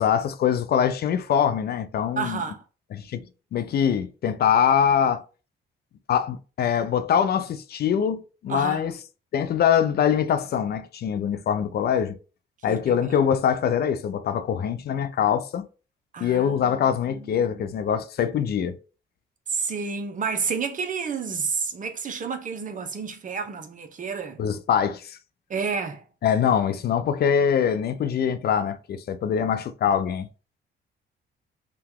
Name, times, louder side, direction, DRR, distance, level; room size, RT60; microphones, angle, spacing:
voice 1, 0.0-2.4 2.9-3.2 3.5-5.2 6.1-8.9 9.3-12.2 12.6-15.7 16.2-18.8 24.4-25.2 26.2-30.3, left 8 dB, 55° left, 0.4 m, -23 dB
voice 2, 2.2-2.6 8.5-8.8 12.7-13.0 16.1-17.8 19.5-24.4 25.5-26.0, right 5 dB, 40° right, 0.7 m, -30 dB
2.8 x 2.3 x 3.5 m
cardioid pair, 90°, 20 cm